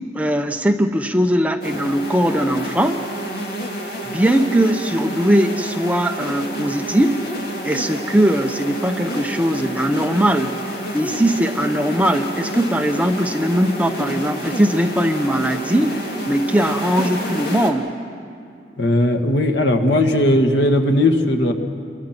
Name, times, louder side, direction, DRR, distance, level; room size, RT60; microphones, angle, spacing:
voice 1, 0.1-3.0 4.0-7.2 7.6-10.6 10.9-17.9, right 1 dB, 10° right, 5 dB, 0.7 m, -19 dB
sound 1, 1.6-17.7, equal, 60° left, 2.6 m, -29 dB
voice 2, 18.8-21.5, left 1 dB, 85° left, 5 dB, 1.8 m, -17 dB
29.5 x 23.0 x 6.0 m, 2.4 s
head